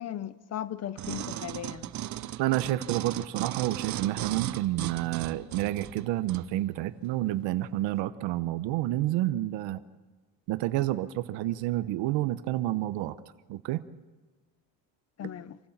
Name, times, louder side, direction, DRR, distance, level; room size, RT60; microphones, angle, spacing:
voice 1, 0.0-1.9 15.2-15.6, left 10 dB, 35° left, 0.7 m, -37 dB
sound 1, 1.0-6.5 7.0-7.1, right 12 dB, 40° right, 0.6 m, -37 dB
voice 2, 2.4-9.8 10.5-13.2 13.5-13.8, right 15 dB, 85° right, 0.9 m, -29 dB
27.0 x 16.0 x 7.3 m
cardioid pair, 140°, 43 cm